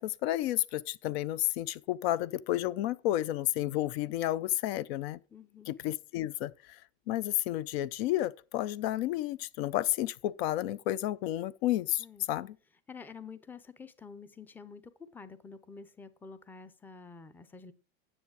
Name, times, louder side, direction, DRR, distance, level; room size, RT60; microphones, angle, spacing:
voice 1, 0.0-5.2 5.7-6.8 7.1-12.6, left 14 dB, 65° left, 0.5 m, -31 dB
voice 2, 5.3-5.7 12.0-12.3 12.9-17.7, left 5 dB, 5° left, 0.5 m, -48 dB
9.8 x 7.1 x 4.7 m
supercardioid pair, 130°, 33 cm